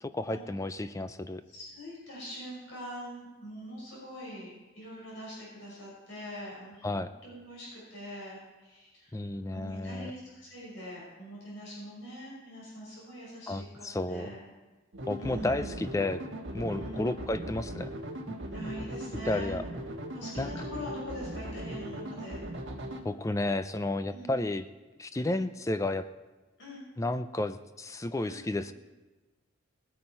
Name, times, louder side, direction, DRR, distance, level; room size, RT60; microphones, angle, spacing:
voice 1, 0.0-1.4 6.8-7.1 9.1-10.1 13.5-14.3 15.1-16.2 16.5-17.9 18.3-18.4 19.2-19.6 20.4-20.5 23.0-24.7 25.0-26.1 27.0-28.7, left 2 dB, 15° left, 11 dB, 0.3 m, -32 dB
voice 2, 1.5-9.2 9.5-13.7 14.1-14.4 15.2-15.7 16.7-17.2 18.5-19.5 20.1-22.4 24.1-24.4 25.1-25.4 26.6-26.8 28.2-28.4, equal, 60° left, -5 dB, 5.5 m, -43 dB
sound 1, 14.9-23.0, right 1 dB, 60° right, 1.7 m, -39 dB
19.5 x 9.5 x 4.5 m, 1.2 s
head